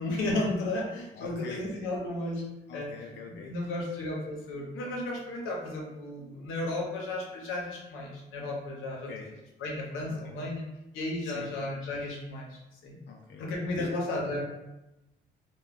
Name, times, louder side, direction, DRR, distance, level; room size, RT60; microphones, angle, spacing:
voice 1, 0.0-2.4 2.7-2.9 3.5-9.1 9.6-10.7 10.9-13.0 13.4-14.4, left 2 dB, 90° left, -2 dB, 0.7 m, -33 dB
voice 2, 1.1-1.7 2.7-3.7 9.1-9.3 10.1-10.4 11.2-11.5 13.1-13.4 13.8-13.9, left 5 dB, 60° left, 0 dB, 0.4 m, -44 dB
2.2 x 2.2 x 3.3 m, 0.97 s
cardioid pair, 90°, 20 cm